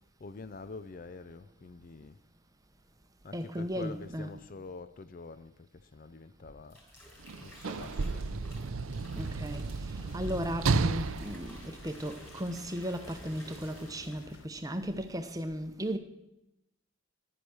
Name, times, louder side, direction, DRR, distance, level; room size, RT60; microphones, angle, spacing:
voice 1, 0.2-2.2 3.2-6.8 7.4-8.3, left 3 dB, 40° left, 0.4 m, -46 dB
voice 2, 3.3-4.3 9.2-9.6 10.1-16.0, equal, 15° right, 0.8 m, -36 dB
sound 1, 6.4-14.4 14.7-15.1, equal, 10° left, 3.7 m, -53 dB
Sliding door / Slam, 7.2-12.6 13.5-13.6, right 4 dB, 65° right, 0.5 m, -33 dB
sound 2, 10.1-14.5, left 4 dB, 60° left, 0.9 m, -54 dB
11.0 x 9.9 x 6.4 m
head